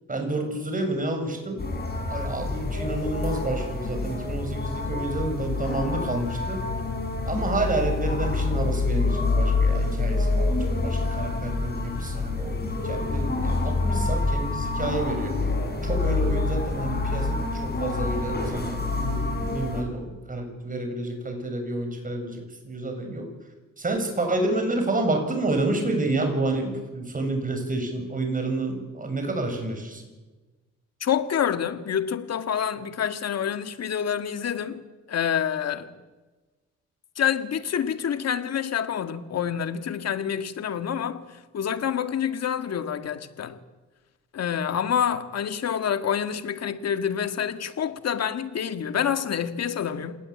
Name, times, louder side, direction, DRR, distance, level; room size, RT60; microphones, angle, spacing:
voice 1, 0.1-1.6 2.1-6.6 7.3-15.3 15.8-23.3 23.8-30.0, right 2 dB, 25° right, 7.5 m, -29 dB
sound 1, 1.6-19.8, left 3 dB, 35° left, 7.6 m, -27 dB
voice 2, 31.0-34.8 35.1-35.9 37.2-41.2 41.5-43.6 44.3-50.2, left 8 dB, 55° left, 2.0 m, -27 dB
27.0 x 19.5 x 8.8 m
cardioid pair, 90°, 30 cm